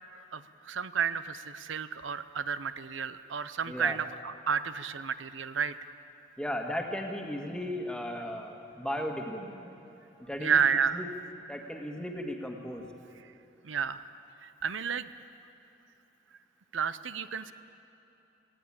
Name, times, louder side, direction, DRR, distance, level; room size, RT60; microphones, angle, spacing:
voice 1, 0.3-5.7 10.4-11.0 13.6-14.0 14.4-15.1 16.7-17.5, right 7 dB, 85° right, 13 dB, 0.7 m, -31 dB
voice 2, 3.7-4.0 6.4-9.8 10.2-10.6 10.9-11.1 11.5-12.9, left 1 dB, 5° left, 2 dB, 1.6 m, -36 dB
19.5 x 17.0 x 8.8 m, 2.9 s
head